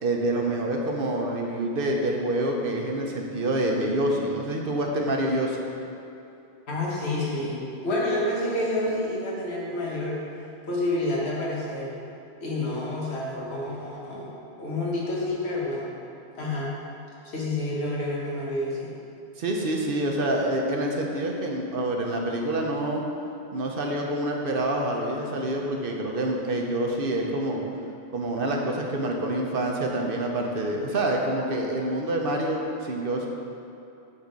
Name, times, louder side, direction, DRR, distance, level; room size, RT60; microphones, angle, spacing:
voice 1, 0.0-5.6 19.4-23.0 23.5-27.6 28.1-33.3, right 1 dB, 60° right, 1 dB, 0.9 m, -27 dB
voice 2, 6.7-10.2 10.7-11.9 12.4-14.3 14.6-15.9 16.4-16.7 17.2-18.9, left 1 dB, 75° left, -5 dB, 1.6 m, -29 dB
8.2 x 3.8 x 5.2 m, 2.7 s
omnidirectional pair, 1.1 m